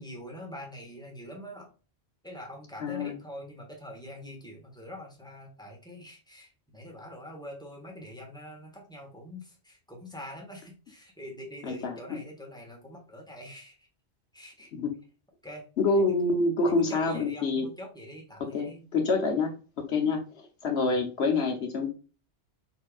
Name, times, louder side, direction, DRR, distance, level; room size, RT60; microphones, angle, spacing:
voice 1, 0.0-1.7 2.2-13.9 14.3-14.7 15.4-15.7 15.9-16.0 16.6-18.8 20.8-21.0, equal, 5° left, -1 dB, 1.4 m, -44 dB
voice 2, 2.8-3.2 11.6-12.0 14.7-14.9 15.8-17.7 18.4-21.9, left 3 dB, 70° left, 4 dB, 1.2 m, -27 dB
5.1 x 4.4 x 2.4 m, 0.35 s
omnidirectional pair, 1.1 m